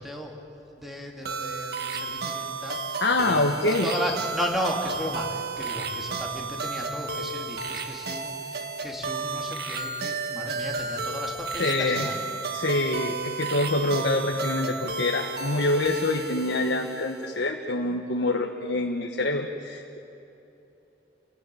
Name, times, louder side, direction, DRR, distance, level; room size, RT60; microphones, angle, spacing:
voice 1, 0.0-12.2, equal, ahead, 0 dB, 3.0 m, -35 dB
sound 1, 1.3-17.4, right 4 dB, 65° right, 1.8 m, -33 dB
voice 2, 3.0-4.1 11.6-12.1 12.5-20.0, left 2 dB, 90° left, 1 dB, 1.4 m, -26 dB
29.5 x 18.5 x 9.3 m, 2.9 s
head